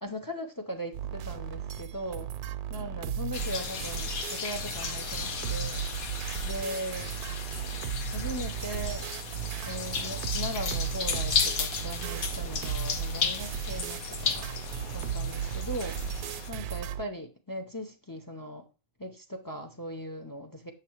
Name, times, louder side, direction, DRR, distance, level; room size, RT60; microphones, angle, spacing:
voice 1, 0.0-2.3 2.7-5.8 6.4-7.1 8.1-9.1 9.6-14.5 14.9-15.9 16.5-18.6 19.0-20.7, equal, 30° left, 0.4 m, -39 dB
sound 1, 0.9-17.1, right 8 dB, 85° right, 1.1 m, -35 dB
sound 2, 3.3-16.5, left 6 dB, 70° left, 1.3 m, -35 dB
7.0 x 6.7 x 3.0 m
omnidirectional pair, 1.6 m